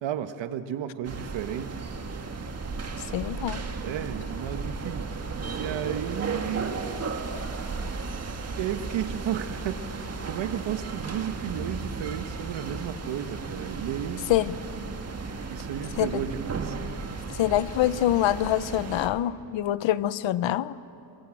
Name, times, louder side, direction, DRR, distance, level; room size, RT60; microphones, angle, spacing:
voice 1, 0.0-1.9 3.8-5.1 5.6-6.8 8.6-14.3 15.5-16.8, right 9 dB, 85° right, 10 dB, 1.4 m, -33 dB
sound 1, 1.0-19.1, right 4 dB, 35° right, 1.9 m, -35 dB
voice 2, 3.1-3.6 14.3-14.5 16.0-16.2 17.3-20.7, left 13 dB, 80° left, 17 dB, 0.8 m, -25 dB
29.0 x 22.5 x 7.7 m, 2.9 s
cardioid pair, 115°, 44 cm